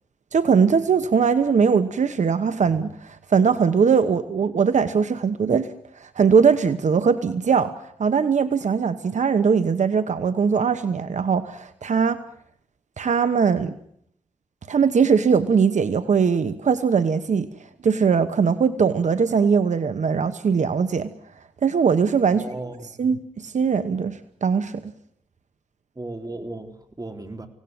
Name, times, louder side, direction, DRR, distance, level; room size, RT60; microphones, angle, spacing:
voice 1, 0.3-5.7 6.0-7.7 8.0-12.2 13.0-13.8 14.7-17.5 17.8-21.1 21.6-22.5 23.0-24.9, right 6 dB, 75° right, 11 dB, 1.1 m, -20 dB
voice 2, 22.3-23.1 25.9-27.5, right 2 dB, 30° right, 6 dB, 3.5 m, -35 dB
25.0 x 18.0 x 9.5 m, 0.71 s
wide cardioid pair, 70°, 12 cm